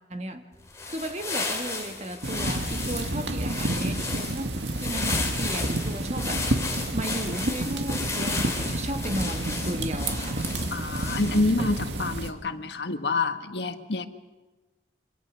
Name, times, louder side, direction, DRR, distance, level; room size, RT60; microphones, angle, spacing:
voice 1, 0.1-0.5 0.8-4.5 4.8-6.5 6.9-10.5, right 1 dB, 35° right, 6 dB, 1.8 m, -34 dB
sound 1, 0.6-11.6, left 3 dB, 15° left, 3.4 m, -34 dB
sound 2, 2.2-12.3, right 1 dB, 80° right, 2.2 m, -30 dB
voice 2, 10.7-14.1, left 3 dB, 80° left, 9 dB, 1.5 m, -27 dB
27.5 x 25.5 x 6.4 m, 1.2 s
head